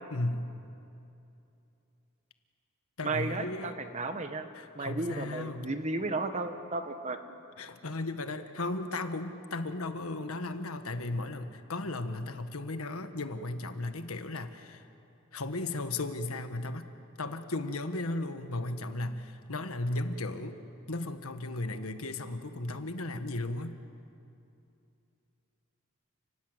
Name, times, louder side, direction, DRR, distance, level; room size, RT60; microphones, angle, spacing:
voice 1, 0.1-0.5 3.0-3.8 4.5-5.7 7.6-14.9 15.3-16.9 17.2-20.6 20.9-23.8, left 2 dB, 85° left, 8 dB, 1.5 m, -35 dB
voice 2, 3.0-4.5 4.7-7.2, right 3 dB, 35° right, 8 dB, 1.4 m, -34 dB
30.0 x 19.5 x 8.0 m, 2.7 s
head